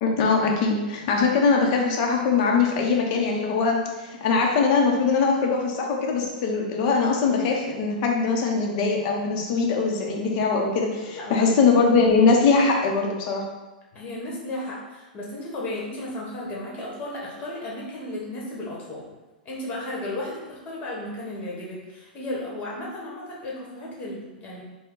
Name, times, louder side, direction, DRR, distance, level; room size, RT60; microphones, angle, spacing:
voice 1, 0.0-3.8 4.1-13.4, left 4 dB, 50° left, 1 dB, 0.9 m, -21 dB
voice 2, 11.2-11.5 13.9-19.0 19.4-24.6, left 1 dB, 30° left, -4 dB, 1.4 m, -34 dB
4.4 x 2.3 x 3.9 m, 1.1 s
hypercardioid pair, 125°, 5 cm